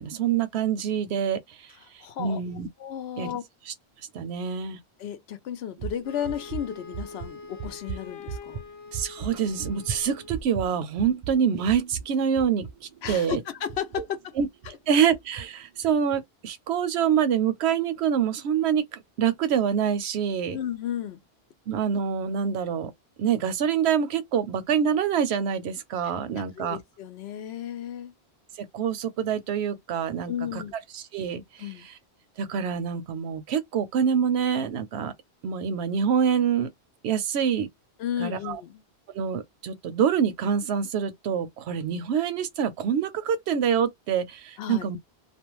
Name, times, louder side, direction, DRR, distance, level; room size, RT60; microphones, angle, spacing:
voice 1, 0.0-1.7 2.2-2.7 3.2-3.3 4.1-4.8 8.9-12.7 13.1-13.4 14.0-14.1 14.4-14.5 14.9-20.6 21.7-22.9 23.2-26.8 28.6-30.6 30.9-31.4 32.4-35.1 35.4-36.7 37.0-37.7 38.2-38.6 39.1-45.0, right 7 dB, 80° right, 0.9 m, -26 dB
voice 2, 2.0-2.4 2.8-3.4 5.0-8.6 13.0-14.3 20.5-21.2 26.6-28.1 30.2-30.7 31.6-31.9 38.0-38.8 44.6-44.9, left 10 dB, 75° left, 0.8 m, -33 dB
sound 1, 5.8-14.8 15.1-15.4 15.8-16.2, right 7 dB, 55° right, 0.5 m, -38 dB
Wind instrument woodwind instrument, 6.0-10.5, left 5 dB, 40° left, 0.6 m, -44 dB
2.5 x 2.1 x 2.9 m
omnidirectional pair, 1.1 m